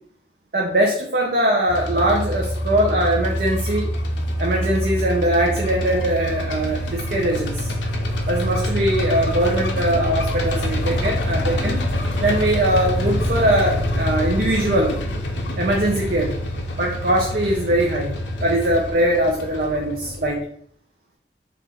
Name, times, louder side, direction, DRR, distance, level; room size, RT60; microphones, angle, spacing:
voice 1, 0.5-3.9 4.4-7.7 8.3-11.8 12.2-14.9 15.6-16.3 16.8-18.1 18.4-20.4, right 1 dB, 55° right, -1 dB, 0.6 m, -21 dB
sound 1, 1.7-20.3, equal, 80° left, 0.8 m, -25 dB
3.9 x 2.6 x 4.1 m, 0.62 s
head